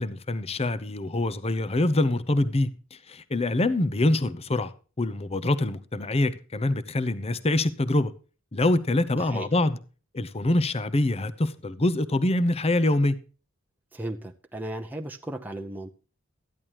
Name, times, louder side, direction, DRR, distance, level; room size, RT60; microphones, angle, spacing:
voice 1, 0.0-4.7 5.0-8.1 8.5-9.8 10.1-13.2, left 2 dB, 30° left, 0.7 m, -25 dB
voice 2, 9.2-9.5 13.9-15.9, right 1 dB, 10° right, 0.7 m, -35 dB
14.0 x 10.5 x 3.0 m
head